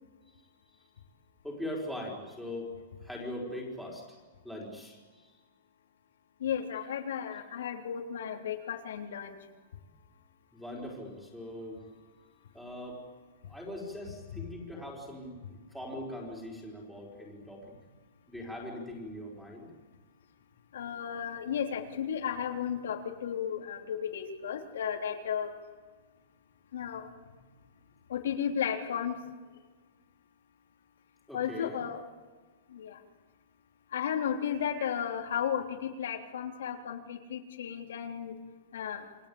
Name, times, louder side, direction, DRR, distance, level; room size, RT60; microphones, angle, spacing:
voice 1, 1.4-2.7 3.0-4.1 4.4-5.3 10.5-11.8 12.5-13.0 13.5-17.7 18.3-19.7 31.3-31.9, left 1 dB, ahead, -2 dB, 4.8 m, -41 dB
voice 2, 6.4-9.4 20.7-25.5 26.7-27.1 28.1-29.2 31.3-32.0 32.7-33.0 33.9-38.3 38.7-39.0, left 8 dB, 90° left, 2 dB, 3.5 m, -34 dB
28.5 x 22.5 x 8.8 m, 1.4 s
supercardioid pair, 175°, 0 cm